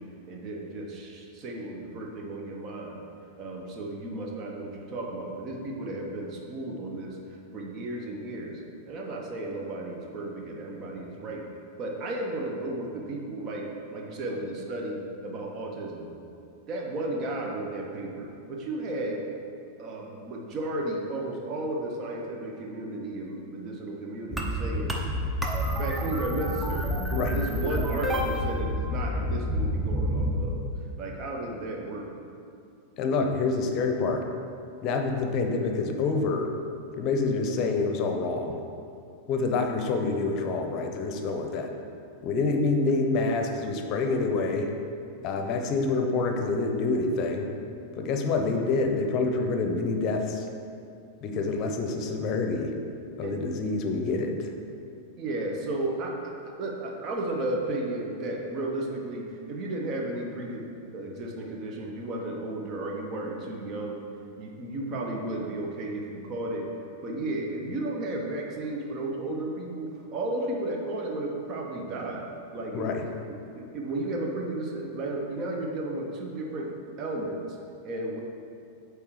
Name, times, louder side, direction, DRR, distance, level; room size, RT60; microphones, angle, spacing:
voice 1, 0.0-3.0 3.4-7.2 7.5-8.6 8.9-11.4 11.8-16.1 16.7-19.2 19.8-25.0 25.7-30.6 31.0-32.1 53.2-53.3 55.2-56.3 56.6-60.7 60.9-64.0 64.4-66.7 67.0-72.3 72.5-72.9 73.3-76.7 77.0-77.4 77.8-78.2, right 2 dB, 35° right, 0 dB, 1.1 m, -34 dB
sound 1, 24.3-30.4, equal, 10° right, 0.8 m, -28 dB
voice 2, 33.0-34.3 34.8-36.5 37.0-38.6 39.3-41.7 42.2-44.7 45.2-47.5 47.9-50.5 51.2-52.7 53.2-54.5 72.7-73.1, left 3 dB, 40° left, 4 dB, 0.7 m, -27 dB
8.3 x 3.4 x 4.9 m, 2.5 s
figure-of-eight pair, 90°, 0 cm